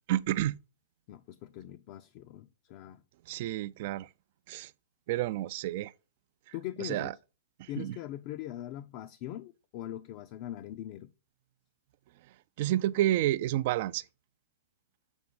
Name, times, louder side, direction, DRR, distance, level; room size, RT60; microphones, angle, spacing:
voice 1, 0.1-0.6 3.3-4.1 4.5-4.7 5.1-5.9 6.8-7.1 7.6-8.0 12.6-14.0, right 14 dB, 55° right, 0.4 m, -30 dB
voice 2, 1.1-3.0 6.5-7.2 7.7-11.1, left 13 dB, 45° left, 0.5 m, -41 dB
7.0 x 4.3 x 3.9 m
hypercardioid pair, 125°, 0 cm